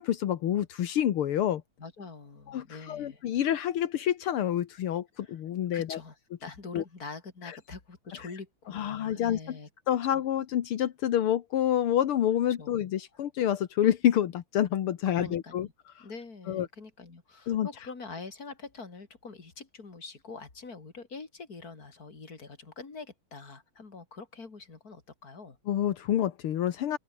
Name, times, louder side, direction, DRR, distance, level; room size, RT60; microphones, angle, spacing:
voice 1, 0.0-1.6 2.5-6.0 6.7-6.8 8.7-9.6 9.9-15.7 16.5-16.7 17.5-17.7 25.7-27.0, left 11 dB, 80° left, 2.1 m, -28 dB
voice 2, 1.8-3.2 5.2-5.4 5.7-9.7 10.1-10.2 12.6-12.8 13.1-13.2 15.1-15.7 16.0-25.6, left 4 dB, 40° left, 3.9 m, -45 dB
open air
omnidirectional pair, 2.4 m